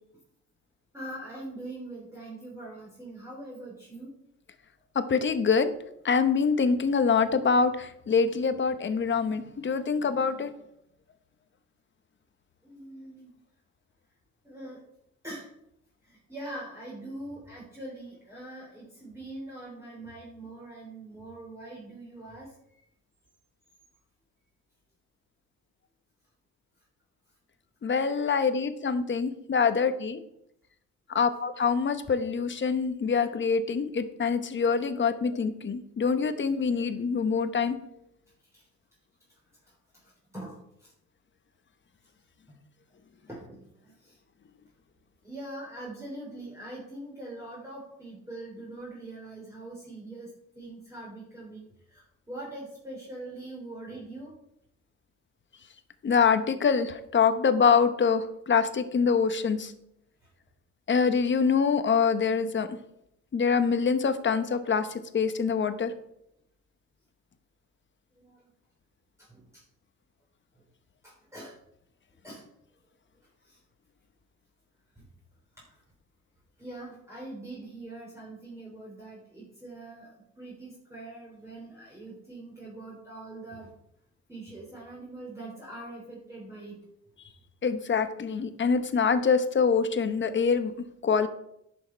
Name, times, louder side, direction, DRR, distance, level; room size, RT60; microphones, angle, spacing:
voice 1, 0.9-4.1 12.6-13.3 14.4-14.8 15.2-15.5 16.0-22.6 28.1-28.2 31.1-31.2 38.5-38.6 39.6-40.9 43.3-44.2 45.2-54.3 68.2-68.4 69.2-69.6 71.0-71.6 72.2-72.4 73.4-73.6 75.0-75.1 75.6-75.7 76.6-83.7 84.3-86.8, right 2 dB, 10° right, -5 dB, 3.5 m, -43 dB
voice 2, 4.9-5.7 6.0-10.5 27.8-30.2 31.1-37.8 56.0-59.7 60.9-62.7 63.3-64.9 65.1-65.9 87.6-90.7 91.0-91.3, left 5 dB, 40° left, 10 dB, 1.0 m, -25 dB
11.0 x 6.4 x 4.5 m, 0.77 s
cardioid pair, 90°, 30 cm